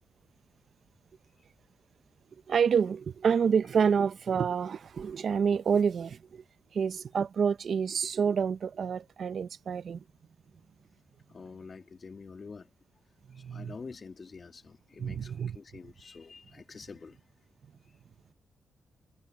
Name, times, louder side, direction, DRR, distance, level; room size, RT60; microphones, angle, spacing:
voice 1, 2.5-6.4 6.7-10.0 13.3-13.7 15.0-15.6, right 6 dB, 60° right, 0.7 m, -28 dB
voice 2, 11.3-12.7 13.3-17.2, left 4 dB, 40° left, 2.4 m, -47 dB
cardioid pair, 115°, 0 cm